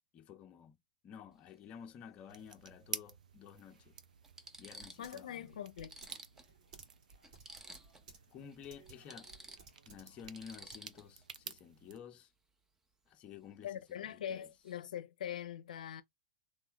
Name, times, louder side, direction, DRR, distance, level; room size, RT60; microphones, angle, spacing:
voice 1, 0.1-0.8 1.0-4.0 4.6-5.5 8.3-9.3 9.9-12.3 13.1-14.5, left 8 dB, 30° left, 0.6 m, -52 dB
sound 1, 1.3-1.5 3.0-3.1 3.7-3.8 4.2-5.2 5.5-5.6 5.8-8.1 8.4-8.6 8.9-11.3 13.9-14.1 14.4-14.8, right 2 dB, 10° right, 0.5 m, -54 dB
sound 2, 2.3-12.0, right 7 dB, 90° right, 0.4 m, -51 dB
Typing, 3.8-11.2, right 4 dB, 55° right, 2.0 m, -61 dB
voice 2, 5.0-6.0 13.6-16.0, left 10 dB, 80° left, 0.5 m, -42 dB
3.2 x 2.1 x 3.9 m
hypercardioid pair, 120°, 4 cm